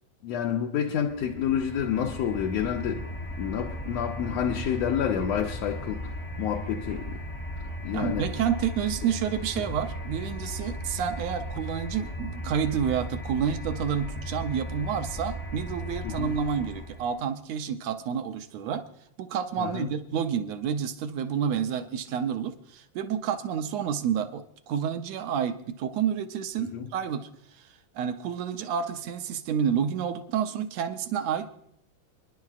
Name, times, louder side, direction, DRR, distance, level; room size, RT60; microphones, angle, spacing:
voice 1, 0.2-3.1 3.3-7.2 7.8-8.3 9.6-9.7 16.0-16.3 19.6-19.9 26.7-26.9, left 8 dB, 75° left, 1.6 m, -29 dB
sound 1, 1.0-17.2, left 1 dB, 25° left, 0.8 m, -37 dB
voice 2, 7.9-18.9 19.2-27.3 27.6-27.7 27.9-31.5, right 8 dB, 75° right, 1.7 m, -29 dB
28.5 x 10.5 x 2.4 m
omnidirectional pair, 3.7 m